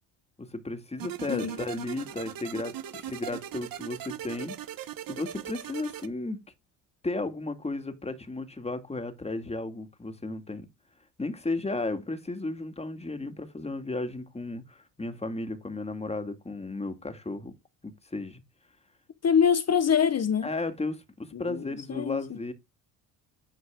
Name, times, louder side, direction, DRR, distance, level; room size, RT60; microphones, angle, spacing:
voice 1, 0.4-2.7 3.0-4.6 5.1-6.4 7.0-10.7 11.2-17.6 17.8-18.4 20.4-22.5, left 2 dB, 15° left, 2.1 m, -34 dB
sound 1, 1.0-6.1, right 11 dB, 50° right, 1.2 m, -39 dB
voice 2, 19.2-20.5 21.3-22.4, left 7 dB, 35° left, 1.0 m, -25 dB
10.5 x 4.6 x 3.7 m
supercardioid pair, 80°, 43 cm